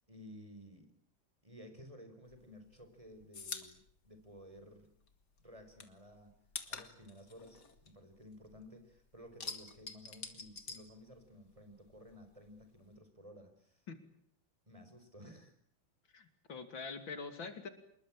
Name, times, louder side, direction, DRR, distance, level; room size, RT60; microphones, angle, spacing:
voice 1, 0.1-0.9 1.4-4.9 5.4-6.3 6.7-13.9 14.7-15.5, equal, 15° right, 7 dB, 4.9 m, -55 dB
sound 1, 2.3-5.1 5.4-8.7 9.0-11.6 11.9-13.0, left 5 dB, 60° left, 2.8 m, -47 dB
voice 2, 16.1-17.7, left 4 dB, 85° left, 9 dB, 3.5 m, -44 dB
27.0 x 21.5 x 8.9 m, 0.64 s
omnidirectional pair, 2.1 m